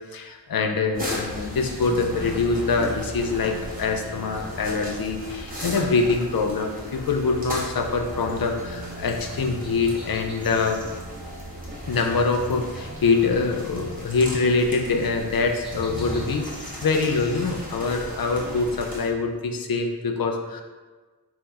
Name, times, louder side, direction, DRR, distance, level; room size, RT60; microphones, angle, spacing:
voice 1, 0.1-10.8 11.9-20.6, left 4 dB, 70° left, 4 dB, 0.5 m, -24 dB
sound 1, 0.9-19.1, equal, 25° right, 1.0 m, -36 dB
sound 2, 1.3-17.8, right 2 dB, 70° right, 0.7 m, -43 dB
sound 3, 9.6-11.0 15.6-17.0, left 1 dB, 10° left, 0.7 m, -44 dB
4.4 x 2.1 x 4.1 m, 1.3 s
wide cardioid pair, 65°, 36 cm